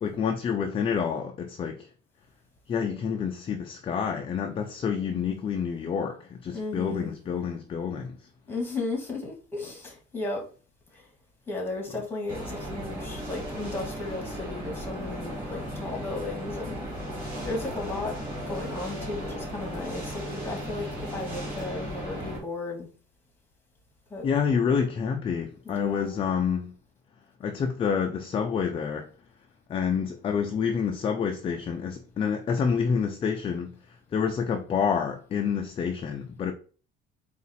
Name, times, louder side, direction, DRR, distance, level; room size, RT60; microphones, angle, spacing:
voice 1, 0.0-1.9 2.7-8.3 24.2-26.7 27.4-29.1 29.7-33.8 34.1-36.5, left 6 dB, 25° left, 0.4 m, -28 dB
voice 2, 6.5-7.1 8.5-10.5 10.9-11.1 11.5-16.8 17.4-18.2 18.5-22.9 24.1-24.3 25.6-26.1, left 2 dB, 10° left, 1.2 m, -35 dB
sound 1, 12.3-22.4, equal, 10° right, 2.1 m, -36 dB
4.0 x 2.4 x 4.0 m
cardioid pair, 160°, 21 cm